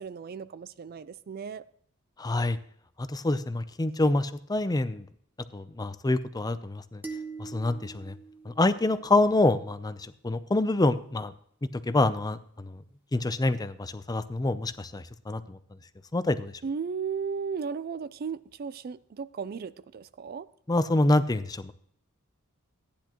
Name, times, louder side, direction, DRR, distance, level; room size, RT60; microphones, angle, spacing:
voice 1, 0.0-1.6 16.6-20.5, right 6 dB, 45° right, 0.4 m, -35 dB
voice 2, 2.2-2.6 3.0-5.0 5.5-7.0 7.4-8.1 8.5-10.0 10.2-11.3 11.9-12.8 13.1-15.6 16.1-16.5 20.7-21.7, left 2 dB, 20° left, 0.5 m, -26 dB
sound 1, 7.0-9.5, right 4 dB, 10° right, 1.1 m, -43 dB
14.5 x 10.0 x 3.0 m
head